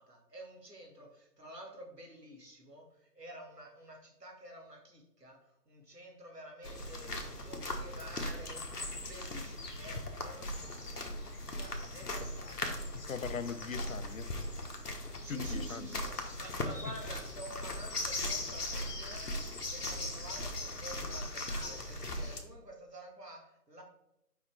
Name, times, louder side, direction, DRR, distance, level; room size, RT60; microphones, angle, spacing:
voice 1, 0.0-12.8 15.2-23.8, right 1 dB, 80° right, 1 dB, 2.0 m, -50 dB
sound 1, 6.6-22.4, left 1 dB, 75° left, 1.2 m, -39 dB
voice 2, 12.9-14.3 15.3-16.0, left 6 dB, 60° left, 13 dB, 0.5 m, -40 dB
5.5 x 5.1 x 3.4 m, 0.81 s
figure-of-eight pair, 150°, 48 cm